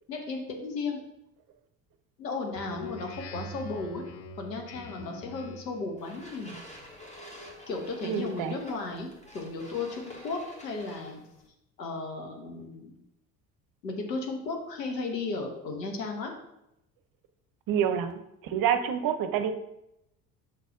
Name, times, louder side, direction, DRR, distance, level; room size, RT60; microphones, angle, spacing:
voice 1, 0.1-1.0 2.2-4.0 4.4-6.6 7.7-9.1 9.3-11.2 11.8-13.0 13.8-16.3, left 3 dB, 85° left, 2 dB, 1.2 m, -35 dB
Speech synthesizer, 2.5-5.9, left 1 dB, 50° left, 0.9 m, -43 dB
sound 1, 6.0-11.5, equal, 15° left, 1.6 m, -48 dB
voice 2, 8.0-8.5 17.7-18.1 18.4-19.5, right 8 dB, 45° right, 9 dB, 0.8 m, -27 dB
5.9 x 4.2 x 5.0 m, 0.84 s
figure-of-eight pair, 60°, 48 cm